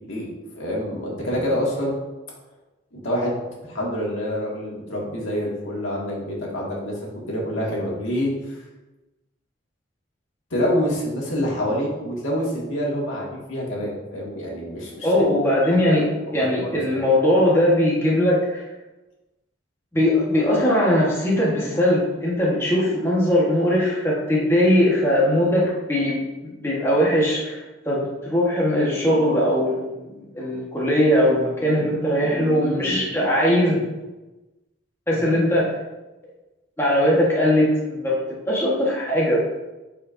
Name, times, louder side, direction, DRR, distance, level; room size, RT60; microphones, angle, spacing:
voice 1, 0.6-1.9 2.9-8.3 10.5-15.6 15.8-16.0 16.4-17.0, equal, 90° left, -4 dB, 2.0 m, -27 dB
voice 2, 15.0-16.1 16.3-18.7 19.9-34.0 35.1-35.7 36.8-38.1 38.5-39.4, left 1 dB, 15° left, -5 dB, 1.3 m, -20 dB
9.4 x 4.9 x 2.7 m, 1.1 s
head